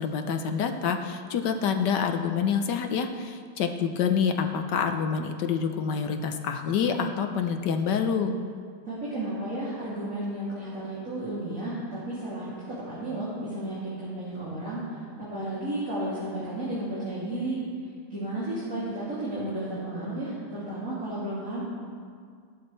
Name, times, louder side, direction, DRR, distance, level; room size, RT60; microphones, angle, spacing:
voice 1, 0.0-8.4, left 6 dB, 65° left, 6 dB, 1.3 m, -27 dB
voice 2, 8.8-15.0 15.3-17.6 18.1-21.6, right 1 dB, 40° right, -10 dB, 3.3 m, -33 dB
17.5 x 12.0 x 3.3 m, 2.1 s
omnidirectional pair, 2.2 m